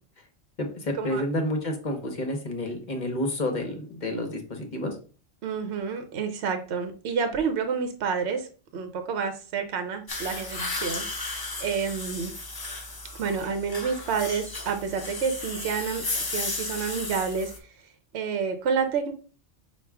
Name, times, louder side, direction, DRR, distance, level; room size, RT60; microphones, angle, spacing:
voice 1, 0.6-5.0, left 1 dB, 45° left, 4 dB, 0.9 m, -30 dB
voice 2, 5.4-8.5 8.7-12.3 13.1-16.0 16.3-17.5 18.1-19.1, right 6 dB, 70° right, 7 dB, 0.9 m, -29 dB
sound 1, 10.1-17.6, left 2 dB, 25° left, 0.5 m, -34 dB
5.8 x 2.4 x 3.4 m, 0.38 s
omnidirectional pair, 1.2 m